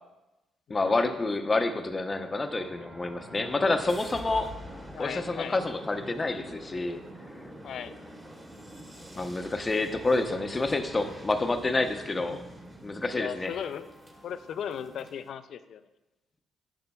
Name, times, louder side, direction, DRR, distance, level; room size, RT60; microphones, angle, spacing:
voice 1, 0.7-4.5 5.0-7.0 9.1-12.4 12.8-13.5, left 2 dB, 30° left, 8 dB, 0.7 m, -28 dB
sound 1, 1.5-15.3, right 1 dB, 20° right, 1.8 m, -46 dB
voice 2, 4.9-5.6 7.6-7.9 12.1-12.4 13.1-13.9 14.2-15.8, left 8 dB, 65° left, 12 dB, 0.4 m, -37 dB
10.5 x 6.5 x 2.3 m, 1.0 s
hypercardioid pair, 50°, 0 cm